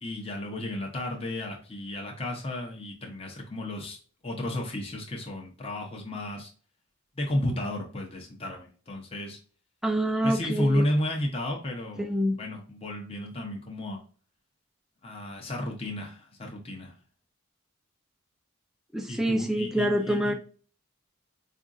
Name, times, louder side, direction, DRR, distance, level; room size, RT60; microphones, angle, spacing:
voice 1, 0.0-4.0 4.2-6.5 7.2-9.4 10.2-12.1 12.4-14.0 15.0-16.9 19.1-20.3, left 1 dB, 30° left, 0 dB, 0.7 m, -32 dB
voice 2, 9.8-10.9 12.0-12.4 18.9-20.3, equal, ahead, 4 dB, 0.4 m, -26 dB
4.8 x 2.5 x 2.4 m, 0.41 s
head